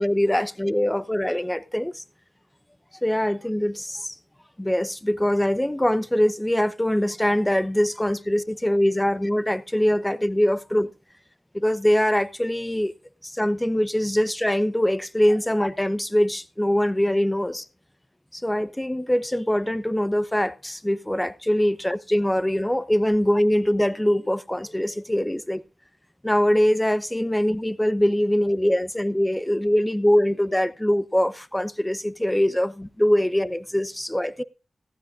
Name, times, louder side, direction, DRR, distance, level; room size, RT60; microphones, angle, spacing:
voice 1, 0.0-2.0 3.0-4.2 4.6-10.9 11.5-12.9 13.2-17.6 18.3-25.6 26.2-34.4, equal, 10° left, 0.9 m, -23 dB
15.5 x 15.0 x 2.5 m
cardioid pair, 45°, 0 cm